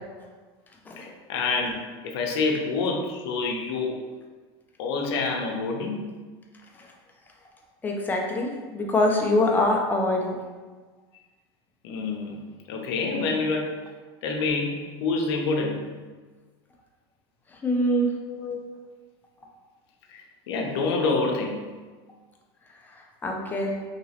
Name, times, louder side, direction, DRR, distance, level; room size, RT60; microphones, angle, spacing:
voice 1, 1.0-4.0 4.8-6.1 11.8-12.4 12.7-13.7 14.2-15.8 18.3-18.6 20.1-21.7, left 3 dB, 80° left, 2 dB, 0.6 m, -27 dB
voice 2, 7.8-10.4 17.6-18.1 23.2-23.7, left 1 dB, 15° left, 0 dB, 0.5 m, -24 dB
2.9 x 2.8 x 2.8 m, 1.4 s
supercardioid pair, 135°, 13 cm